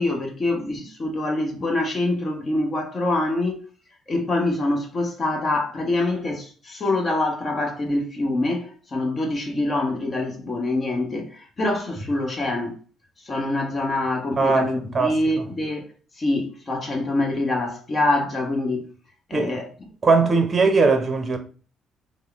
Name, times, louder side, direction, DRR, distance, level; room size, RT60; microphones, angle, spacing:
voice 1, 0.0-3.6 4.1-12.8 13.3-15.9 16.2-18.8 19.3-19.7, left 2 dB, 40° left, 1.0 m, -25 dB
voice 2, 14.4-15.5 19.3-19.5 20.0-21.4, right 4 dB, 35° right, 0.6 m, -20 dB
3.5 x 2.0 x 3.3 m
hypercardioid pair, 55°, 0 cm